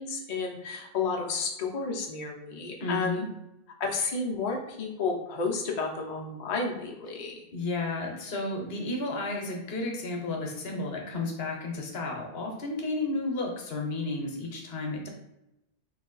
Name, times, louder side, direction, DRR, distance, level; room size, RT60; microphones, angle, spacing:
voice 1, 0.0-3.2 3.8-7.4, left 4 dB, 50° left, 0 dB, 0.6 m, -31 dB
voice 2, 2.8-3.2 7.5-15.1, left 2 dB, 70° left, 1 dB, 1.0 m, -32 dB
3.2 x 2.7 x 3.8 m, 0.87 s
omnidirectional pair, 1.1 m